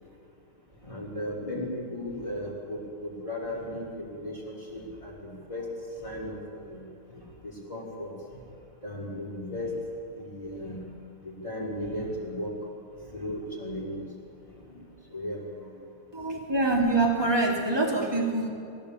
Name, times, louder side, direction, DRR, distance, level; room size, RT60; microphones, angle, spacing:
voice 1, 0.7-10.9 11.2-15.9, left 1 dB, 15° left, -4 dB, 5.6 m, -37 dB
voice 2, 16.1-18.5, right 2 dB, 10° right, -2 dB, 3.2 m, -25 dB
21.5 x 17.5 x 8.7 m, 2.7 s
omnidirectional pair, 2.3 m